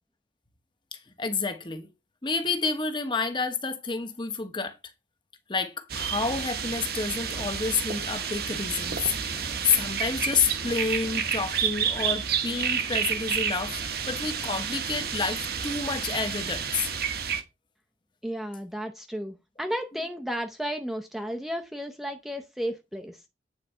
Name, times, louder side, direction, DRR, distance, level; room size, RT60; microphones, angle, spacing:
voice 1, 0.9-1.9 2.2-4.8 5.5-13.8 14.1-16.9, left 4 dB, 25° left, 1.0 m, -29 dB
sound 1, 5.9-17.4, right 7 dB, 60° right, 1.2 m, -30 dB
voice 2, 18.2-23.2, equal, ahead, 0.6 m, -33 dB
9.1 x 4.1 x 5.5 m
head